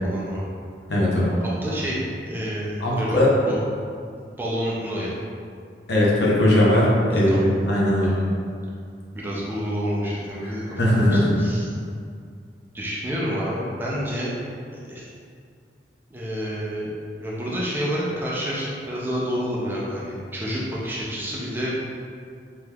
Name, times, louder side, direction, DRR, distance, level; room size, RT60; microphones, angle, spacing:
voice 1, 0.0-0.5 1.4-3.2 3.5-3.6 4.4-5.1 7.1-7.4 9.1-11.6 12.7-14.3 14.8-15.1 16.1-16.9 17.2-21.8, equal, 10° right, -6 dB, 0.4 m, -29 dB
voice 2, 0.9-1.3 2.8-3.3 5.9-8.1 10.8-11.3, left 1 dB, 70° left, -5 dB, 0.7 m, -19 dB
3.4 x 2.9 x 2.3 m, 2.3 s
head